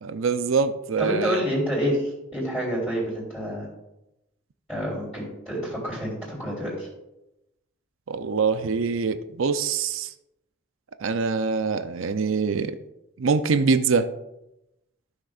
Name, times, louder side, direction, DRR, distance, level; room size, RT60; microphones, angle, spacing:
voice 1, 0.0-1.4 8.1-10.1 11.0-12.8 13.2-14.1, right 5 dB, 70° right, 10 dB, 0.5 m, -24 dB
voice 2, 1.0-3.7 4.7-6.9, equal, ahead, -11 dB, 3.5 m, -28 dB
15.0 x 6.5 x 2.4 m, 0.91 s
head